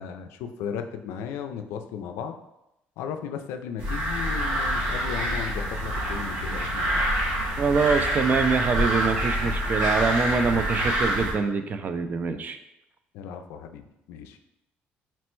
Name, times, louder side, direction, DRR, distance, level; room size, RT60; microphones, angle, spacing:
voice 1, 0.0-2.3 3.0-7.0 13.1-14.4, left 7 dB, 85° left, 7 dB, 0.3 m, -35 dB
sound 1, 3.8-11.3, right 1 dB, 90° right, 1.0 m, -26 dB
voice 2, 7.6-12.6, right 5 dB, 45° right, 9 dB, 0.4 m, -25 dB
4.3 x 2.1 x 4.4 m, 0.87 s
cardioid pair, 90°, 4 cm